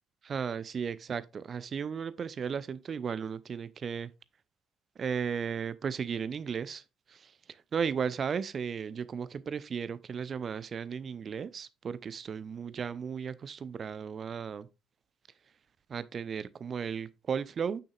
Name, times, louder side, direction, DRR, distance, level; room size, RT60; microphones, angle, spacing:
voice 1, 0.2-4.1 5.0-14.7 15.9-17.8, right 6 dB, 40° right, 0.6 m, -35 dB
8.7 x 6.4 x 2.4 m
figure-of-eight pair, 50°, 0 cm